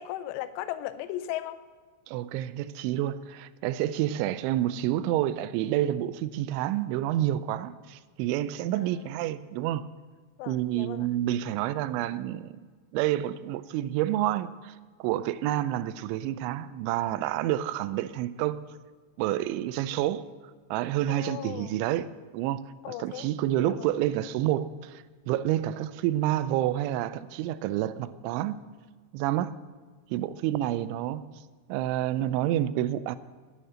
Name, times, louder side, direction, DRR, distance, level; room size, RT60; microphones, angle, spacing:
voice 1, 0.0-1.6 10.4-11.1 21.1-21.8 22.8-23.3 23.6-23.9, left 13 dB, 85° left, 11 dB, 2.4 m, -36 dB
voice 2, 2.1-9.9 10.5-12.6 12.9-18.6 19.2-20.3 20.7-28.6 29.1-29.6 30.1-31.2 31.7-33.2, right 13 dB, 85° right, 15 dB, 2.8 m, -29 dB
9.8 x 9.5 x 8.6 m, 1.4 s
omnidirectional pair, 5.7 m